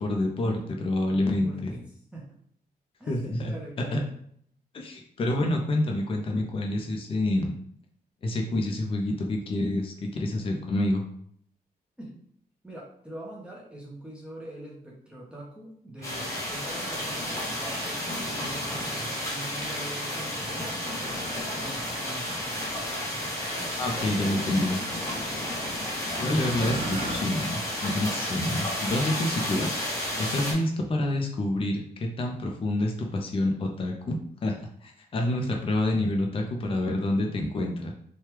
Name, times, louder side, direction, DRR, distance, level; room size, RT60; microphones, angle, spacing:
voice 1, 0.0-1.7 3.1-4.0 4.7-7.5 8.2-11.0 23.8-24.8 26.2-29.8 30.2-34.6 34.8-37.9, left 1 dB, 35° left, 2 dB, 0.5 m, -28 dB
voice 2, 1.1-1.8 2.1-2.4 3.0-4.1 6.1-6.2 12.0-12.2 12.6-18.8 19.3-22.8 28.0-28.3, right 1 dB, 5° right, -5 dB, 0.6 m, -43 dB
sound 1, 16.0-30.5, left 1 dB, 15° left, 0.9 m, -32 dB
sound 2, 16.0-27.2, right 2 dB, 50° right, 0.6 m, -42 dB
3.2 x 2.2 x 2.9 m, 0.65 s
wide cardioid pair, 150°, 16 cm